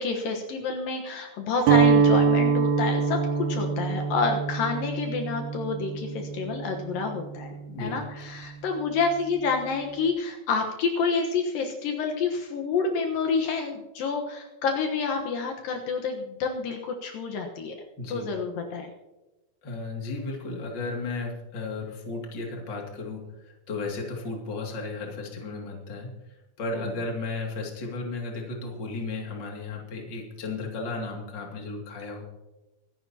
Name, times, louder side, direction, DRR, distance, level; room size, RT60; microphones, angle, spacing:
voice 1, 0.0-17.8 18.1-18.9, left 4 dB, 75° left, 2 dB, 2.9 m, -28 dB
Guitar, 1.6-7.7, right 6 dB, 90° right, 3.5 m, -24 dB
voice 2, 7.7-8.0 18.0-18.3 19.6-26.1 26.6-32.2, left 3 dB, 35° left, 0 dB, 2.7 m, -34 dB
24.5 x 12.0 x 2.9 m, 1.1 s
omnidirectional pair, 4.2 m